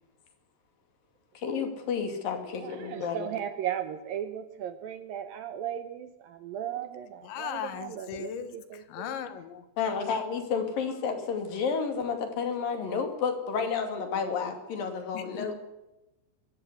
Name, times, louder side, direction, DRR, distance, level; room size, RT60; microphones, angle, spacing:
voice 1, 1.4-3.3 9.8-15.6, left 6 dB, 55° left, 6 dB, 4.0 m, -31 dB
voice 2, 2.6-9.2, right 10 dB, 70° right, 10 dB, 2.3 m, -36 dB
voice 3, 7.2-9.7 15.1-15.6, left 9 dB, 90° left, 11 dB, 3.9 m, -38 dB
23.0 x 14.0 x 8.1 m, 0.96 s
omnidirectional pair, 5.0 m